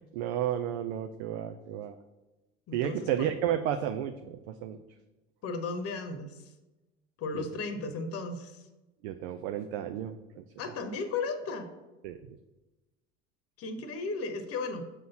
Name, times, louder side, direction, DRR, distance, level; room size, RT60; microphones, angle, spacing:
voice 1, 0.0-1.9 2.7-4.8 7.3-7.4 9.0-10.4 12.0-12.4, right 10 dB, 60° right, 7 dB, 0.5 m, -32 dB
voice 2, 2.7-3.3 5.4-6.5 7.2-8.6 10.6-11.7 13.6-14.8, left 3 dB, 40° left, 7 dB, 1.0 m, -35 dB
6.3 x 3.9 x 5.6 m, 1.1 s
figure-of-eight pair, 70°, 37 cm